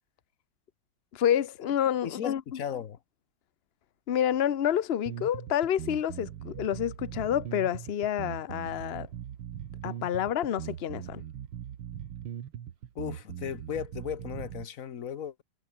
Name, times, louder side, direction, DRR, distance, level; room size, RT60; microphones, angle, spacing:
voice 1, 1.1-2.6 4.1-9.1 9.8-11.2, left 10 dB, 80° left, 0.5 m, -28 dB
voice 2, 2.0-3.0 12.9-15.4, left 8 dB, 50° left, 1.2 m, -36 dB
sound 1, 5.1-14.7, right 10 dB, 90° right, 2.2 m, -40 dB
omnidirectional pair, 2.3 m